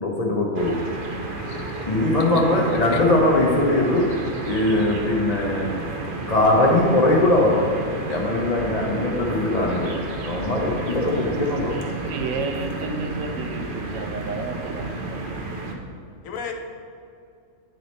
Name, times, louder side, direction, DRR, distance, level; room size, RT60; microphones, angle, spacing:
voice 1, 0.0-0.7 1.9-4.1 4.5-5.7 6.3-7.6 8.1-9.9 10.2-11.7, left 1 dB, 45° left, -2 dB, 0.5 m, -20 dB
sound 1, 0.5-15.7, right 2 dB, 55° right, 0.6 m, -31 dB
voice 2, 1.4-2.3 2.9-3.0 16.2-16.5, left 7 dB, 75° left, 3 dB, 1.1 m, -36 dB
voice 3, 12.0-15.2, right 3 dB, 80° right, 5 dB, 1.0 m, -31 dB
9.3 x 3.1 x 4.0 m, 2.4 s
omnidirectional pair, 1.4 m